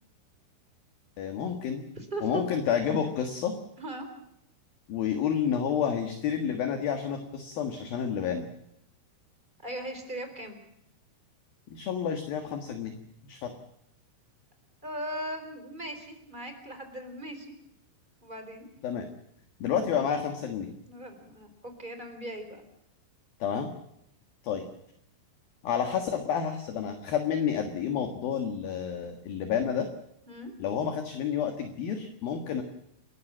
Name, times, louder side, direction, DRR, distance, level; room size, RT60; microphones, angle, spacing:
voice 1, 1.2-1.9 2.2-3.5 4.9-8.5 11.7-12.9 13.2-13.5 18.8-19.1 19.6-20.7 23.4-23.7 24.4-24.6 25.6-29.9 30.6-32.6, left 8 dB, 60° left, 6 dB, 2.8 m, -30 dB
voice 2, 1.9-2.4 3.8-4.1 9.6-10.6 14.8-17.5 18.2-18.7 20.8-22.6 30.3-30.5, right 1 dB, 10° right, 6 dB, 3.3 m, -38 dB
29.5 x 15.0 x 7.4 m, 0.79 s
omnidirectional pair, 5.9 m